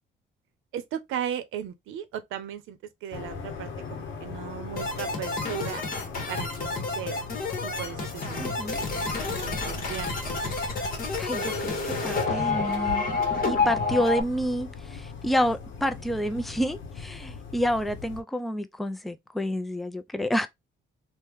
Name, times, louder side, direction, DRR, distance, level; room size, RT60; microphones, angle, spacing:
voice 1, 0.7-5.8 6.3-6.7 7.0-7.3 7.6-10.4, right 9 dB, 85° right, 0.6 m, -37 dB
sound 1, 3.1-18.2, left 5 dB, 70° left, 0.8 m, -39 dB
sound 2, 4.8-14.2, left 3 dB, 45° left, 1.0 m, -29 dB
voice 2, 8.4-8.8 11.2-13.0 13.4-20.5, equal, ahead, 0.3 m, -29 dB
3.1 x 2.1 x 3.4 m
cardioid pair, 90°, 20 cm